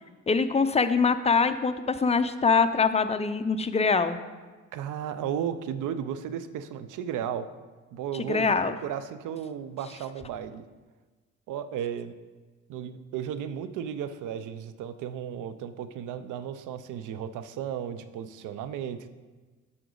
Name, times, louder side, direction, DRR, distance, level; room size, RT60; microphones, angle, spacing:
voice 1, 0.3-4.2 8.1-8.8, left 5 dB, 20° left, 9 dB, 0.6 m, -24 dB
voice 2, 4.7-7.5 7.9-8.5 8.8-10.6 11.5-12.2 12.7-19.1, right 9 dB, 85° right, 12 dB, 0.6 m, -34 dB
11.0 x 6.0 x 3.9 m, 1.3 s
cardioid pair, 90°, 30 cm